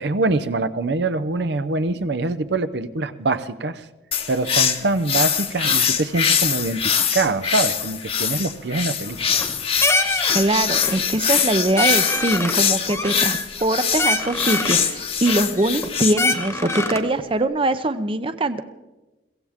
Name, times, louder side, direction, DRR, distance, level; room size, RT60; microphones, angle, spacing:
voice 1, 0.0-3.8 4.3-9.4, right 3 dB, 70° right, 11 dB, 0.7 m, -24 dB
sound 1, 4.1-16.1, left 7 dB, 35° left, 1.0 m, -23 dB
sound 2, 9.1-9.5 9.8-10.4 10.7-11.0 11.4-11.5 11.8-12.6 12.9-13.7 14.0-14.8 15.3-15.9 16.2-17.1, left 2 dB, 15° left, 1.2 m, -24 dB
voice 2, 10.3-18.6, right 2 dB, 30° right, 11 dB, 0.7 m, -22 dB
23.0 x 16.5 x 3.6 m, 1.1 s
head